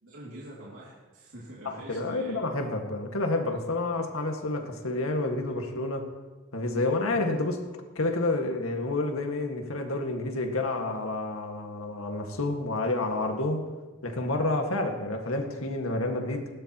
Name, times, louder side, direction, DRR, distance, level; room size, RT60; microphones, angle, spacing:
voice 1, 0.0-2.5 4.6-4.7, right 1 dB, 75° right, -5 dB, 2.6 m, -45 dB
voice 2, 1.7-6.1 6.5-7.6 8.0-13.7 14.0-16.5, left 2 dB, 80° left, 3 dB, 1.8 m, -29 dB
20.0 x 17.0 x 3.0 m, 1.3 s
head